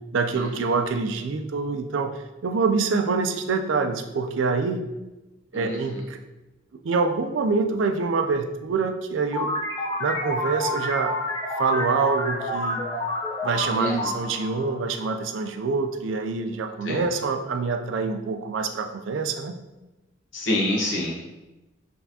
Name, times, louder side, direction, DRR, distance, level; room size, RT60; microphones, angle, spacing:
voice 1, 0.1-4.9 5.5-6.2 6.7-9.5 10.0-11.1 11.6-12.9 13.4-19.6, right 4 dB, 75° right, 6 dB, 0.4 m, -26 dB
voice 2, 5.5-6.0 13.7-14.1 16.8-17.1 20.3-21.2, left 1 dB, 70° left, -4 dB, 1.1 m, -27 dB
sound 1, 9.3-15.6, left 1 dB, 20° left, 0.6 m, -29 dB
4.2 x 3.3 x 2.8 m, 1.0 s
head